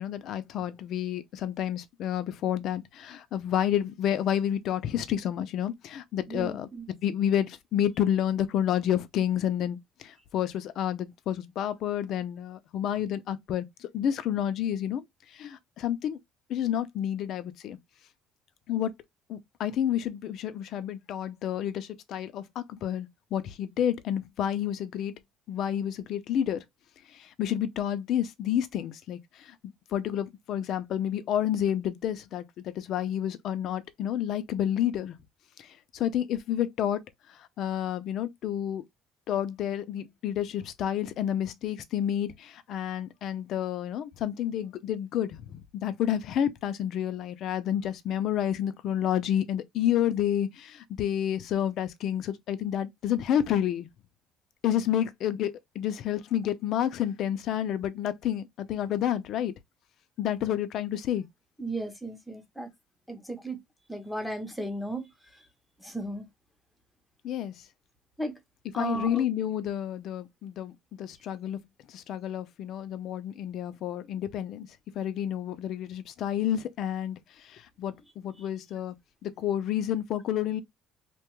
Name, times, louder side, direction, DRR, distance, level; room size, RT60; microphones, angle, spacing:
voice 1, 0.0-6.7 7.0-15.0 15.3-16.2 16.5-17.8 18.7-18.9 19.3-25.1 25.5-26.6 27.1-35.2 35.6-37.0 37.3-38.8 39.3-53.9 54.6-59.5 60.2-61.2 67.2-67.5 68.8-71.6 71.9-74.7 75.0-78.9 79.2-80.6, left 10 dB, 60° left, 0.5 m, -30 dB
voice 2, 6.3-6.9 61.6-62.7 63.1-63.6 63.9-65.1 65.8-66.3 68.2-68.3 68.7-69.2, right 1 dB, ahead, 0.8 m, -34 dB
2.8 x 2.2 x 3.0 m
cardioid pair, 130°, 0 cm